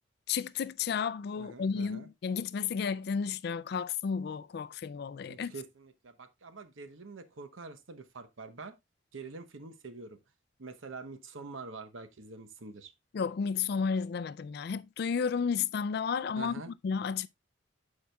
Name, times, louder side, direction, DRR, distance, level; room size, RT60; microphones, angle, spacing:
voice 1, 0.3-5.5 13.1-17.3, left 6 dB, 55° left, 0.3 m, -32 dB
voice 2, 1.3-2.1 5.3-8.8 9.1-10.2 10.6-12.9 16.4-16.7, right 4 dB, 90° right, 0.9 m, -46 dB
11.0 x 4.8 x 2.2 m
head